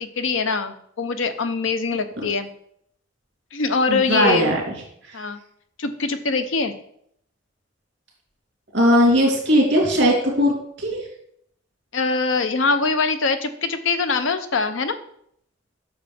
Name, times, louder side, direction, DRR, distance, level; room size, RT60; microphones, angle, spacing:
voice 1, 0.0-2.5 3.5-4.5 5.1-5.4 5.8-6.7 11.9-15.0, left 4 dB, 85° left, 9 dB, 0.7 m, -23 dB
voice 2, 3.9-4.6 8.7-10.5 10.8-11.0, equal, 60° right, -2 dB, 3.0 m, -18 dB
7.9 x 6.7 x 3.5 m, 0.70 s
head